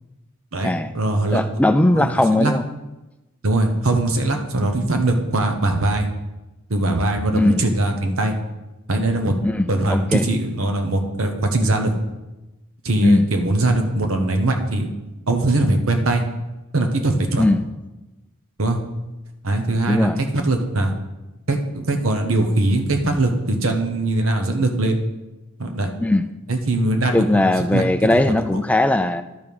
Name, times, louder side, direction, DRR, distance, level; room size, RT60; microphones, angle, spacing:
voice 1, 0.5-1.4 1.9-2.5 3.4-6.1 6.7-8.3 8.9-9.3 9.7-11.9 12.8-14.9 15.3-16.2 16.7-17.5 18.6-18.8 19.4-20.9 21.5-25.0 25.6-25.9 26.5-27.8, right 2 dB, 65° right, 5 dB, 1.1 m, -21 dB
voice 2, 1.3-2.6 7.3-7.5 9.4-10.2 13.0-13.3 17.4-17.6 19.9-20.2 26.0-26.3 27.1-29.2, left 1 dB, 5° left, 9 dB, 0.3 m, -18 dB
11.5 x 4.8 x 5.3 m, 1.0 s
head